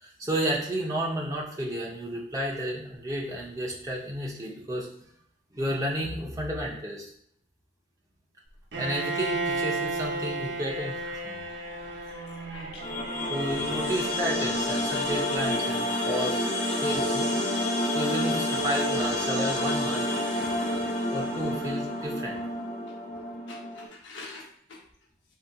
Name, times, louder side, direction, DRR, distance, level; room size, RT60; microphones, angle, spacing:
voice 1, 0.0-4.9 5.5-7.1 8.8-11.0 11.2-11.4 13.3-16.5 16.8-17.3 17.9-20.4 21.1-22.4, equal, 20° right, -3 dB, 0.7 m, -32 dB
Bowed string instrument, 8.7-14.7, right 2 dB, 65° right, 0.7 m, -34 dB
voice 2, 11.0-13.0 16.7-16.8 20.4-20.8 23.5-24.8, left 2 dB, 80° left, -2 dB, 0.8 m, -47 dB
sound 1, 12.8-23.9, left 1 dB, 40° left, 0.6 m, -29 dB
3.9 x 2.8 x 2.2 m, 0.66 s
head